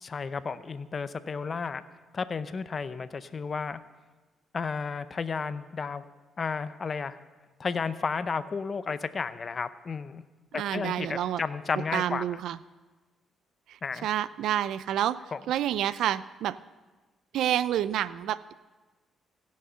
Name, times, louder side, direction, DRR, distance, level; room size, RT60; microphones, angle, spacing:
voice 1, 0.0-3.8 4.5-6.0 6.4-7.2 7.6-10.2 10.5-12.2 13.8-14.1 15.3-15.4, left 5 dB, 40° left, 13 dB, 0.6 m, -33 dB
voice 2, 10.5-11.4 11.9-12.6 13.7-15.2 15.5-16.6 17.3-18.5, right 11 dB, 80° right, 17 dB, 0.3 m, -29 dB
16.0 x 6.4 x 5.7 m, 1.2 s
cardioid pair, 90°, 0 cm